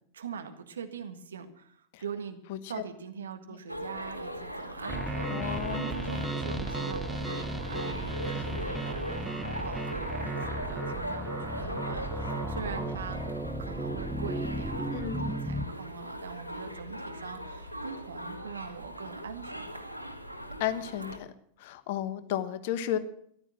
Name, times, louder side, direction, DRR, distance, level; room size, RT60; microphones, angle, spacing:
voice 1, 0.1-2.4 2.7-13.2 13.6-19.8, right 6 dB, 65° right, 7 dB, 1.7 m, -42 dB
sound 1, 3.7-21.2, equal, 90° left, 1.5 m, -39 dB
sound 2, 4.9-15.7, right 2 dB, 5° right, 1.0 m, -35 dB
voice 2, 5.3-5.9 8.3-8.4 14.9-15.2 20.6-21.3 21.6-23.0, left 11 dB, 50° left, 13 dB, 1.2 m, -33 dB
14.5 x 11.5 x 7.6 m, 0.67 s
figure-of-eight pair, 90°, 0 cm